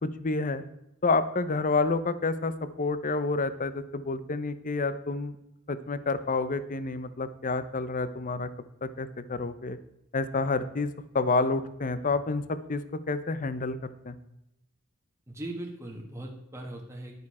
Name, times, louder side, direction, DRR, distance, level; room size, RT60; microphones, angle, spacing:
voice 1, 0.0-0.6 1.0-5.4 5.7-8.5 8.8-9.8 10.1-12.8 13.1-13.8 14.0-14.2, left 3 dB, 35° left, 13 dB, 0.7 m, -29 dB
voice 2, 15.3-17.3, right 1 dB, 15° right, 0 dB, 1.4 m, -39 dB
11.0 x 9.5 x 4.2 m, 0.87 s
head